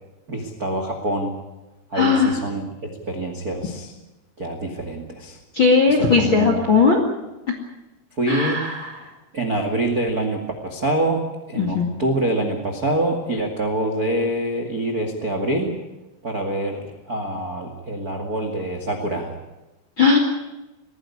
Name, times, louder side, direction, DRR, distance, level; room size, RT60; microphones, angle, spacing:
voice 1, 0.3-1.3 1.9-3.9 4.4-5.4 5.9-6.7 8.1-8.7 9.3-15.7 16.2-19.3, right 1 dB, 60° right, 4 dB, 0.9 m, -25 dB
voice 2, 1.9-2.3 5.5-7.0 8.3-8.9 11.6-11.9 20.0-20.2, left 5 dB, 45° left, 3 dB, 1.6 m, -17 dB
21.5 x 15.5 x 9.8 m, 1.0 s
omnidirectional pair, 5.9 m